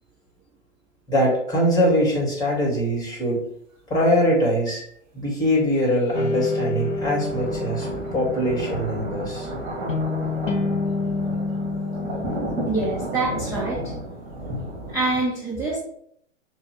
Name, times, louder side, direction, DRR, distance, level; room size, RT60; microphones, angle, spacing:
voice 1, 1.1-3.4 3.9-4.8 5.1-9.5, equal, 10° left, -3 dB, 1.6 m, -22 dB
sound 1, 6.1-13.5, left 3 dB, 80° left, 0.8 m, -29 dB
sound 2, 6.3-15.2, right 1 dB, 35° right, 1.7 m, -33 dB
voice 2, 12.6-13.9 14.9-15.8, right 2 dB, 5° right, -6 dB, 0.7 m, -25 dB
6.7 x 2.3 x 3.0 m, 0.66 s
hypercardioid pair, 120°, 38 cm